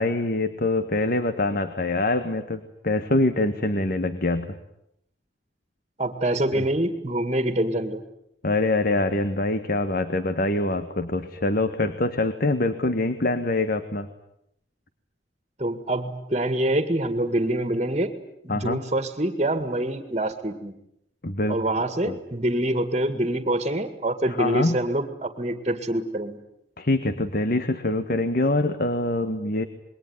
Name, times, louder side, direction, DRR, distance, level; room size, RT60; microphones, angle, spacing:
voice 1, 0.0-4.6 6.5-6.6 8.4-14.1 18.5-18.8 21.2-21.6 22.1-22.2 24.3-24.8 26.8-29.6, left 2 dB, 55° left, 10 dB, 1.6 m, -24 dB
voice 2, 6.0-8.0 15.6-18.1 18.4-20.7 21.5-26.4, right 1 dB, 35° right, 9 dB, 2.1 m, -25 dB
27.5 x 22.0 x 9.6 m, 0.78 s
head